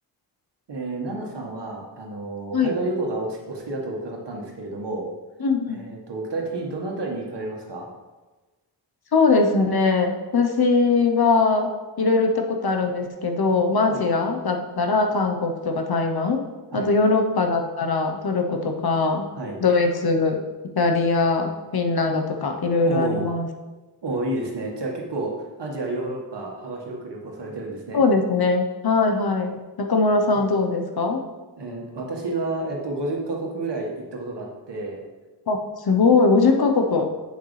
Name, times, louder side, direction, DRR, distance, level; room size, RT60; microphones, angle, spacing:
voice 1, 0.7-5.1 5.7-7.9 13.9-14.0 16.7-16.9 19.3-19.6 22.9-23.3 24.0-25.3 25.6-28.0 31.6-35.0, right 2 dB, 70° right, -1 dB, 1.7 m, -30 dB
voice 2, 5.4-5.8 9.1-11.7 12.0-16.4 16.7-19.3 19.6-20.4 20.7-23.5 27.9-31.2 35.5-37.1, left 4 dB, 60° left, 4 dB, 0.9 m, -21 dB
8.3 x 6.5 x 3.3 m, 1.2 s
wide cardioid pair, 100°, 42 cm